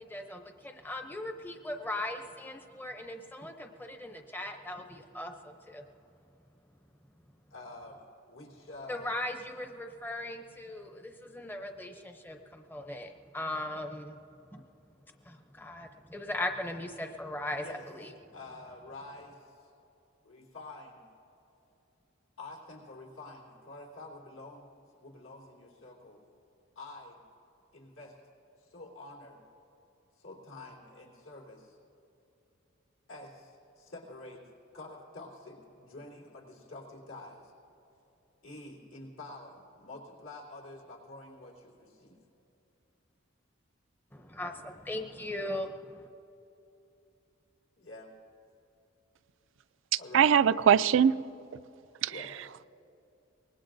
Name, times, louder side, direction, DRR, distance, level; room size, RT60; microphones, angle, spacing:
voice 1, 0.0-5.8 8.9-14.2 14.5-14.6 15.2-18.1 44.1-46.1, left 1 dB, 10° left, 5 dB, 0.6 m, -39 dB
voice 2, 7.5-9.3 17.6-17.8 18.3-19.7 20.2-21.0 22.4-26.2 26.8-27.2 27.7-28.2 28.6-29.4 30.2-31.8 33.1-34.4 34.7-37.5 38.4-42.2 47.8-48.1 49.9-50.3 52.1-52.3, left 2 dB, 85° left, -2 dB, 3.6 m, -48 dB
voice 3, 49.9-51.3 51.5-51.6 52.0-52.3, right 8 dB, 70° right, 15 dB, 0.3 m, -23 dB
24.0 x 19.5 x 2.6 m, 2.9 s
head